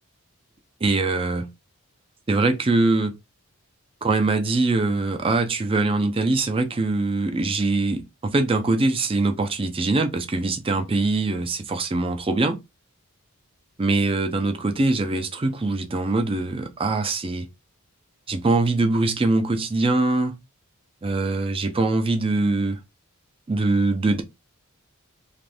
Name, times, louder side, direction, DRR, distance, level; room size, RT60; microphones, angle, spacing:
voice 1, 0.8-1.5 2.3-3.1 4.0-12.6 13.8-17.5 18.3-20.4 21.0-22.8 23.5-24.2, right 2 dB, 25° right, 0.5 m, -23 dB
2.6 x 2.5 x 3.3 m
head